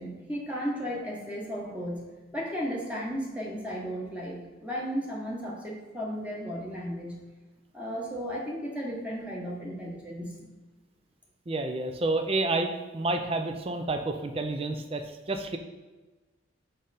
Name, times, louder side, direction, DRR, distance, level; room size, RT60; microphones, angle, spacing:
voice 1, 0.0-7.2 7.7-10.4, equal, 5° right, -4 dB, 1.1 m, -35 dB
voice 2, 11.5-15.6, right 2 dB, 30° right, 6 dB, 0.5 m, -29 dB
5.5 x 5.0 x 4.2 m, 1.2 s
head